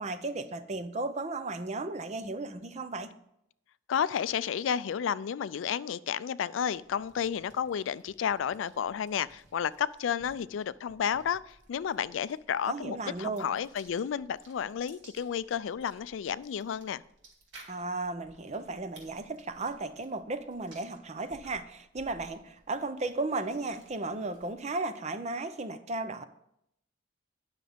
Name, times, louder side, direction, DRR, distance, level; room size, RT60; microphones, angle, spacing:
voice 1, 0.0-3.1 12.7-13.5 17.7-26.2, right 2 dB, 35° right, 11 dB, 0.6 m, -35 dB
voice 2, 3.9-17.0, left 8 dB, 90° left, 17 dB, 0.3 m, -32 dB
sound 1, 6.6-24.7, right 2 dB, 75° right, 2.3 m, -59 dB
10.0 x 6.3 x 5.1 m, 0.77 s
head